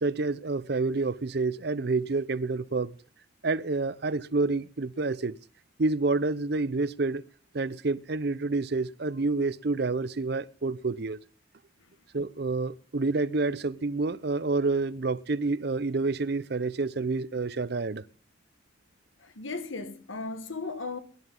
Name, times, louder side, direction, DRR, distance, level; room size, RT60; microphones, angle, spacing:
voice 1, 0.0-2.9 3.4-5.4 5.8-7.2 7.5-11.2 12.1-18.0, right 3 dB, 55° right, 0.6 m, -28 dB
voice 2, 19.2-21.0, left 3 dB, 90° left, 1.7 m, -36 dB
23.0 x 11.5 x 3.8 m
head